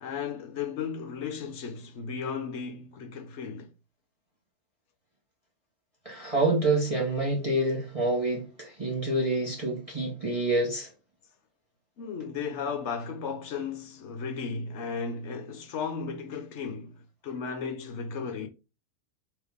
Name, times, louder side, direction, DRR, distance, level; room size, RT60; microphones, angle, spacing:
voice 1, 0.0-3.7 12.0-18.5, left 5 dB, 60° left, 0.9 m, -35 dB
voice 2, 6.0-10.9, right 2 dB, 25° right, 1.0 m, -27 dB
3.7 x 3.1 x 3.4 m
omnidirectional pair, 1.6 m